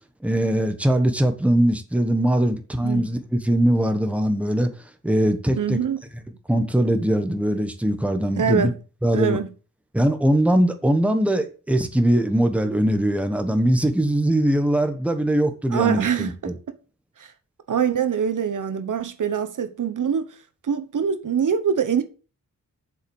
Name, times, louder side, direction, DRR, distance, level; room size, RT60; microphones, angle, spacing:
voice 1, 0.2-4.7 5.0-5.8 6.5-8.7 9.0-9.4 9.9-16.5, right 1 dB, 5° right, 1.2 m, -21 dB
voice 2, 5.6-6.0 8.3-8.7 9.1-9.5 15.7-16.3 17.2-17.3 17.7-20.3 20.6-22.0, right 7 dB, 65° right, 1.2 m, -24 dB
7.6 x 7.4 x 7.1 m
wide cardioid pair, 175°, 33 cm